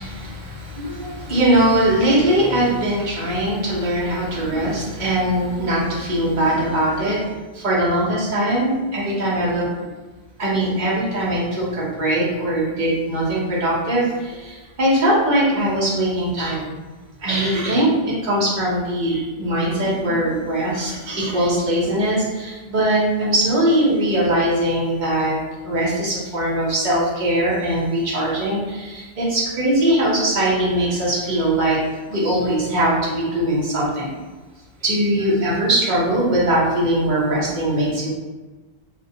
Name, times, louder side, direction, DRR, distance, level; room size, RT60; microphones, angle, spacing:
voice 1, 0.0-9.7 10.4-16.8 17.2-25.4 25.6-31.8 32.1-34.1 34.8-38.1, right 1 dB, 50° right, -6 dB, 0.8 m, -21 dB
2.2 x 2.1 x 2.7 m, 1.2 s
omnidirectional pair, 1.1 m